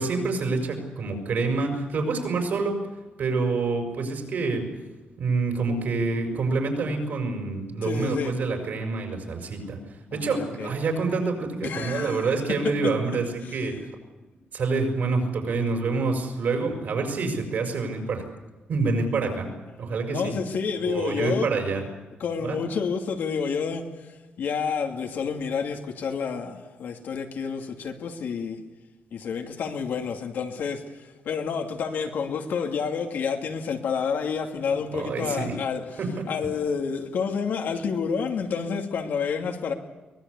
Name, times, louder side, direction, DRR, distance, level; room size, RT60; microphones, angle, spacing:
voice 1, 0.0-2.8 3.2-4.7 5.2-9.8 10.1-13.8 14.5-18.2 18.7-19.5 19.8-20.3 20.8-21.8 22.4-22.6 34.9-35.5 36.0-36.3, right 3 dB, 60° right, 4 dB, 5.9 m, -27 dB
voice 2, 7.8-8.3 10.1-10.7 11.6-12.3 12.8-12.9 13.5-13.7 20.1-21.5 22.2-23.8 24.4-28.6 29.1-36.0 36.3-39.7, left 6 dB, 70° left, 3 dB, 2.6 m, -29 dB
23.5 x 20.0 x 8.4 m, 1.1 s
wide cardioid pair, 155°, 3 cm